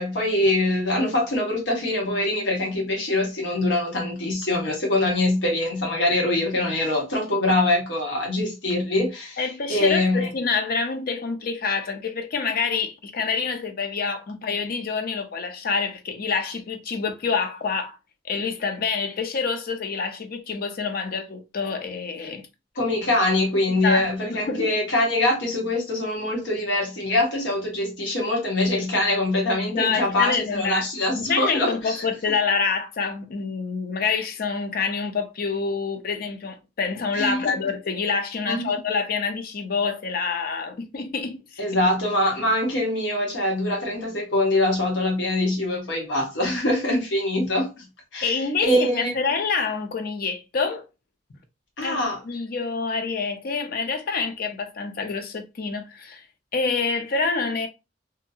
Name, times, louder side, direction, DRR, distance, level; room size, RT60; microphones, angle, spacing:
voice 1, 0.0-9.4 9.7-10.3 22.8-32.1 37.1-37.4 38.5-38.8 41.6-47.8 48.1-49.1 51.8-52.2, left 1 dB, 80° left, 1.1 m, -23 dB
voice 2, 9.4-18.0 18.3-22.4 23.7-24.7 29.7-30.9 31.1-41.6 48.2-50.8 51.8-56.3 56.5-57.7, left 5 dB, 55° left, 0.5 m, -27 dB
2.7 x 2.3 x 2.7 m
head